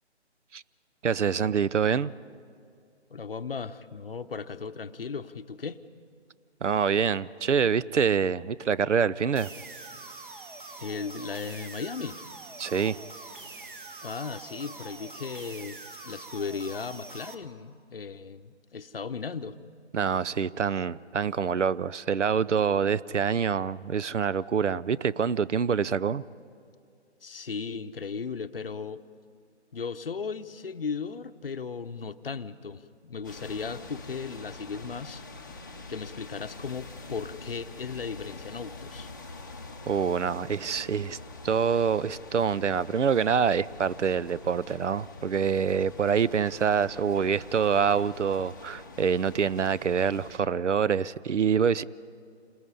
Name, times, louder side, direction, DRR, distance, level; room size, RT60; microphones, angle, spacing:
voice 1, 1.0-2.1 6.6-9.5 12.6-13.0 19.9-26.2 39.9-41.2 41.4-51.8, right 7 dB, 80° right, 18 dB, 0.6 m, -26 dB
voice 2, 3.1-5.8 10.8-12.2 14.0-15.8 16.0-19.6 27.2-29.0 29.7-35.2 35.9-39.1, left 5 dB, 55° left, 11 dB, 0.8 m, -36 dB
sound 1, 9.3-17.3, right 3 dB, 45° right, 1.6 m, -44 dB
sound 2, 33.2-50.4, left 3 dB, 15° left, 0.7 m, -45 dB
28.5 x 20.0 x 5.5 m, 2.3 s
figure-of-eight pair, 165°, 35 cm